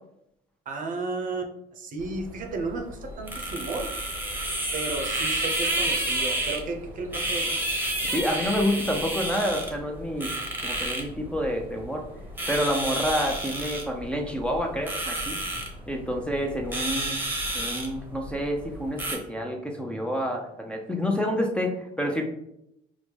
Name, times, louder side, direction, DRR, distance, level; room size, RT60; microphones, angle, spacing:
voice 1, 0.7-4.0 4.7-7.6, right 3 dB, 50° right, 4 dB, 0.7 m, -33 dB
sound 1, 2.0-19.2, right 1 dB, 10° right, 0.9 m, -31 dB
voice 2, 8.1-10.3 10.6-12.0 12.5-15.4 15.9-17.2 17.5-22.2, equal, 5° left, 1 dB, 0.5 m, -28 dB
4.7 x 2.1 x 3.4 m, 0.78 s
cardioid pair, 110°, 17 cm